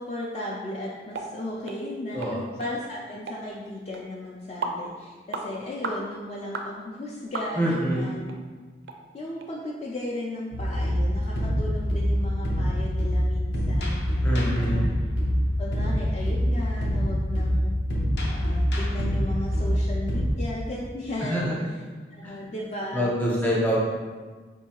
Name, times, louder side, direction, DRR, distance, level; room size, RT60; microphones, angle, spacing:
voice 1, 0.0-8.2 9.1-15.0 15.6-17.8 18.2-21.8 22.1-23.5, left 1 dB, 35° left, -4 dB, 0.4 m, -35 dB
sound 1, 1.1-1.3 1.7-1.8 2.2-2.3 2.6-2.7 3.3-3.4 3.9-4.0 4.6-4.8 5.3-5.5 5.8-6.0 6.5-6.7 7.3-7.8 8.3-8.4 8.9-9.0 9.4-9.5, right 3 dB, 75° right, 0.4 m, -33 dB
voice 2, 7.6-8.0 14.2-14.8 21.3-21.5 22.2-22.4 22.9-23.9, equal, 10° left, -4 dB, 0.7 m, -25 dB
sound 2, 10.5-20.3, equal, 85° left, 0.6 m, -25 dB
4.6 x 2.6 x 2.9 m, 1.4 s
head